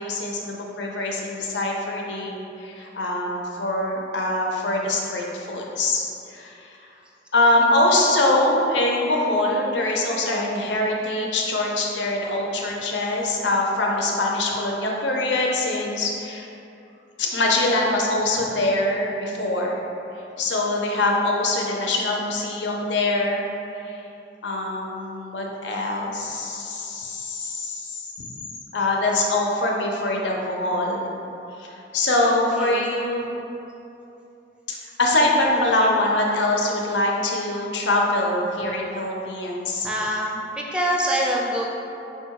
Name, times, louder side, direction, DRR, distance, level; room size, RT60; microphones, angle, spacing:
voice 1, 0.0-6.9 7.3-16.5 17.2-19.8 20.4-23.5 23.8-24.0 24.4-28.3 28.7-31.1 31.6-33.4 34.7-39.9, left 2 dB, 80° left, -1 dB, 0.6 m, -23 dB
voice 2, 32.2-33.1 35.5-35.9 39.8-41.7, equal, 5° right, -2 dB, 0.5 m, -26 dB
4.7 x 2.2 x 4.6 m, 2.9 s
head